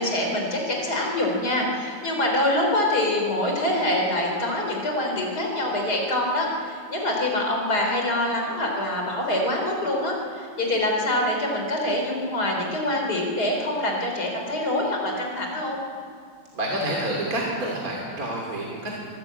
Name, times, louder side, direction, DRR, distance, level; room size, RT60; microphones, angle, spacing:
voice 1, 0.0-15.8, left 1 dB, 45° left, 1 dB, 4.4 m, -25 dB
voice 2, 16.5-19.1, right 1 dB, 40° right, -2 dB, 3.1 m, -28 dB
25.5 x 12.5 x 8.7 m, 2.2 s
omnidirectional pair, 2.4 m